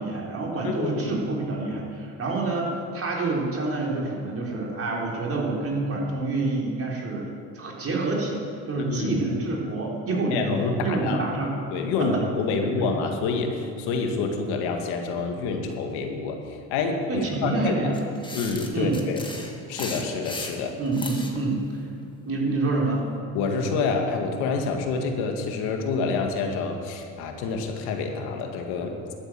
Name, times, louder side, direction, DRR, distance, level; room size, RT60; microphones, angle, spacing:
voice 1, 0.0-10.5 10.8-11.6 12.0-12.2 12.6-12.9 17.1-18.0 18.7-19.0 20.8-21.8 22.3-23.0, right 3 dB, 35° right, -2 dB, 3.9 m, -27 dB
voice 2, 0.6-1.1 8.8-9.2 10.3-11.2 11.7-16.4 16.7-17.9 18.3-19.2 19.7-20.7 23.3-28.9, left 4 dB, 75° left, 3 dB, 2.0 m, -27 dB
sound 1, 17.9-21.4, left 2 dB, 10° left, 2.1 m, -36 dB
12.0 x 9.9 x 7.6 m, 2.4 s
supercardioid pair, 85°, 39 cm